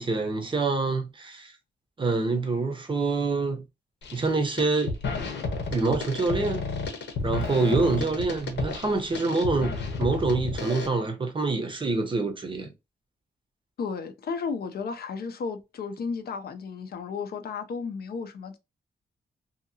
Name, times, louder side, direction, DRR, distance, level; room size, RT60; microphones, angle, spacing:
voice 1, 0.0-1.5 2.0-3.6 4.1-5.0 5.7-6.6 7.2-12.7, right 3 dB, 25° right, 0.6 m, -26 dB
sound 1, 4.0-4.3 4.6-10.9, left 4 dB, 75° left, 0.9 m, -32 dB
voice 2, 13.8-18.6, left 5 dB, 60° left, 0.5 m, -33 dB
2.7 x 2.7 x 2.6 m
wide cardioid pair, 165°, 18 cm